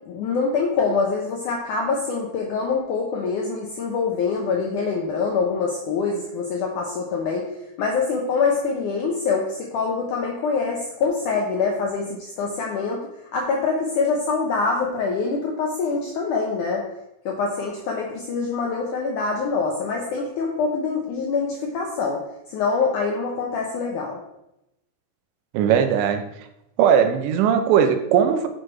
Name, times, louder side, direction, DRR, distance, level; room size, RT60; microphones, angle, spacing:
voice 1, 0.1-7.5 7.8-16.9 17.3-22.2 22.5-24.2, left 4 dB, 75° left, 1 dB, 1.8 m, -25 dB
voice 2, 25.5-26.2 26.8-28.5, right 8 dB, 90° right, 8 dB, 3.1 m, -18 dB
10.0 x 6.4 x 4.6 m, 0.86 s
omnidirectional pair, 4.9 m